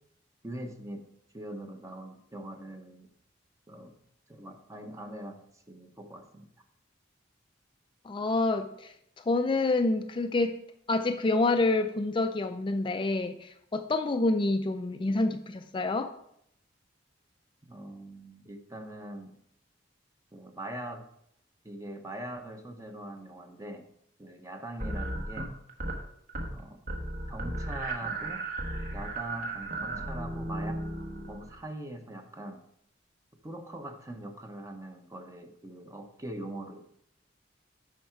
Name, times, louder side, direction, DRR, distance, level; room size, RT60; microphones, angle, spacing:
voice 1, 0.4-1.0 1.3-3.1 3.7-4.0 4.3-6.5 17.7-19.3 20.3-21.0 21.6-23.9 24.2-25.5 26.5-26.8 27.3-28.4 28.9-30.8 31.3-32.6 33.4-36.8, right 1 dB, 15° right, 5 dB, 0.9 m, -42 dB
voice 2, 8.0-10.6 10.9-16.1, left 2 dB, 25° left, 6 dB, 0.4 m, -28 dB
sound 1, 24.8-26.0 26.3-26.6 26.9-31.6, right 2 dB, 50° right, 1.4 m, -35 dB
8.4 x 5.8 x 4.6 m, 0.73 s
head